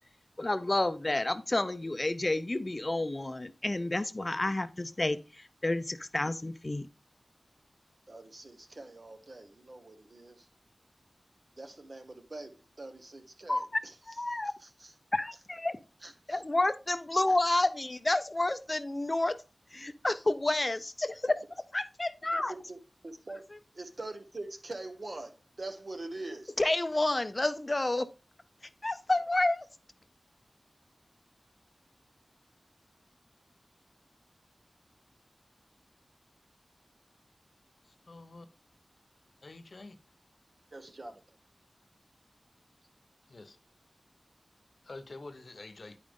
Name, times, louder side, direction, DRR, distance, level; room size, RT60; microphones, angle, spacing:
voice 1, 0.4-5.2 5.6-6.9 13.5-13.6 14.2-14.5 15.1-15.8 16.3-19.4 19.7-21.4 21.7-22.5 26.6-28.1 28.8-29.7, left 2 dB, 35° left, 0.5 m, -29 dB
voice 2, 8.1-10.5 11.6-14.9 16.0-16.4 17.3-17.4 22.3-23.4 23.7-26.5 40.7-41.4, right 2 dB, 55° right, 1.1 m, -44 dB
voice 3, 37.8-38.5 39.4-40.0 43.3-43.6 44.8-46.0, left 2 dB, 65° left, 0.8 m, -47 dB
9.5 x 5.2 x 3.5 m
wide cardioid pair, 80°, 0 cm